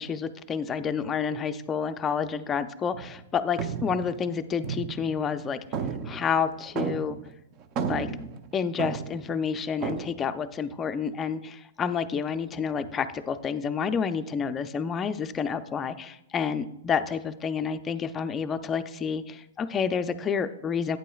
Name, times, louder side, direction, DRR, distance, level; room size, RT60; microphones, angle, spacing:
voice 1, 0.0-5.6 6.0-7.2 7.8-8.1 8.5-21.0, left 6 dB, 20° left, 9 dB, 0.4 m, -29 dB
sound 1, 2.9-3.2 3.6-5.4 5.7-7.3 7.6-9.3 9.8-10.1, right 7 dB, 35° right, 0.6 m, -33 dB
11.0 x 8.9 x 2.3 m, 0.83 s
hypercardioid pair, 135°, 0 cm